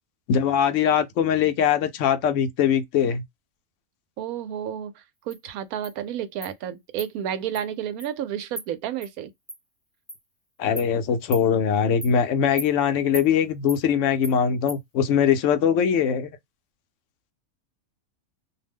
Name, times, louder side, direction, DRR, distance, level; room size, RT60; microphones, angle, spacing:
voice 1, 0.3-3.2 10.6-16.3, left 8 dB, 65° left, 0.9 m, -22 dB
voice 2, 4.2-9.3, right 10 dB, 85° right, 1.0 m, -31 dB
Insect, 5.3-5.4 5.8-5.9 6.4-6.5 7.0-7.1 7.5-7.6 8.0-8.1 8.6-8.7 9.0-9.1 9.5-9.6 10.1-10.2 10.8-10.9 11.3-11.5 12.0-12.1 12.6-12.7 13.1-13.3 13.7-13.8 14.2-14.4 14.7-14.8, equal, 5° left, 0.4 m, -36 dB
2.7 x 2.0 x 3.4 m
omnidirectional pair, 1.5 m